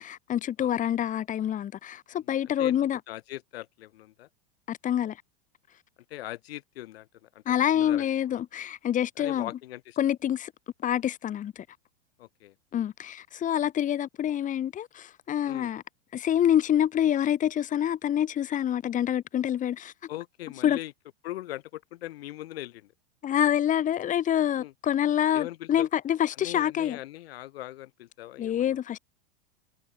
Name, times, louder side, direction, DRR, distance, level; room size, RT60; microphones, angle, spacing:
voice 1, 0.0-3.0 4.7-5.2 7.5-9.5 10.0-10.5 10.8-11.7 12.7-15.8 16.1-19.9 20.6-20.8 23.2-27.0 28.4-29.0, left 10 dB, 25° left, 3.9 m, -26 dB
voice 2, 2.3-2.8 3.1-4.3 6.1-8.0 9.2-10.0 12.2-12.5 15.4-15.7 20.1-20.9 21.2-22.9 24.6-24.7 25.3-25.9 26.4-28.8, left 15 dB, 75° left, 6.9 m, -40 dB
supercardioid pair, 145°, 31 cm